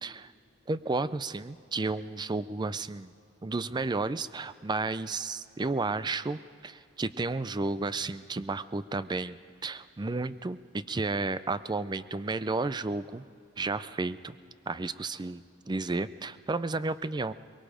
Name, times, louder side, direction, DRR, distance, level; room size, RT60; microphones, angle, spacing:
voice 1, 0.0-0.3 0.7-3.1 3.4-9.4 9.6-13.2 13.6-14.4 14.7-17.3, right 3 dB, 20° right, 14 dB, 0.4 m, -32 dB
23.0 x 22.5 x 5.1 m, 2.2 s
head